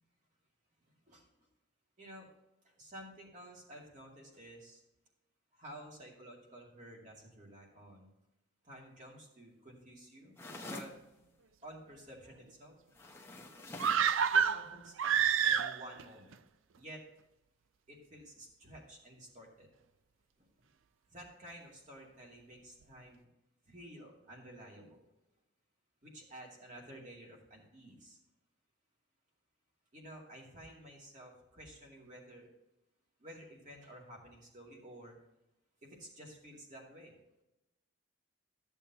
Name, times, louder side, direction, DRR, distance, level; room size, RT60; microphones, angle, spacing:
voice 1, 1.1-1.5 2.0-2.3 2.6-4.8 5.5-8.1 8.6-10.3 10.6-10.9 11.6-12.8 14.3-15.1 15.4-16.4 16.8-17.0 17.9-19.7 20.4-20.7 21.1-23.3 23.7-25.0 26.0-28.2 29.9-32.5 33.2-35.2 35.8-37.2, equal, 35° right, -1 dB, 2.3 m, -52 dB
sound 1, 10.4-11.0 12.9-14.1, left 2 dB, 10° left, 0.9 m, -46 dB
sound 2, 13.8-16.0 16.3-16.4, right 7 dB, 75° right, 0.4 m, -28 dB
13.0 x 7.1 x 2.9 m, 0.92 s
head